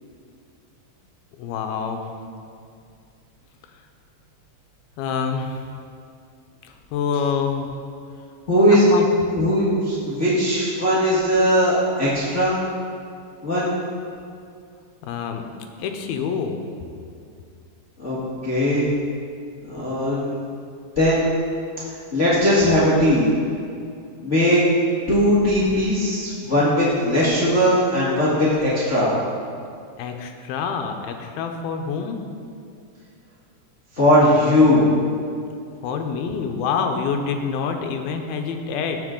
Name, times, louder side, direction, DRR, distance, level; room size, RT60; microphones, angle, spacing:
voice 1, 1.4-2.0 5.0-5.6 6.6-7.7 8.7-9.1 15.0-15.5 15.8-16.6 30.0-32.2 35.8-39.0, left 6 dB, 80° left, 5 dB, 2.5 m, -26 dB
voice 2, 8.5-8.9 9.3-12.5 13.4-13.7 18.0-18.2 18.4-18.9 19.7-20.4 20.9-21.4 22.1-23.3 24.2-24.6 25.1-29.1 33.9-34.8, equal, 50° left, -9 dB, 0.8 m, -19 dB
16.0 x 6.1 x 3.8 m, 2.4 s
omnidirectional pair, 4.4 m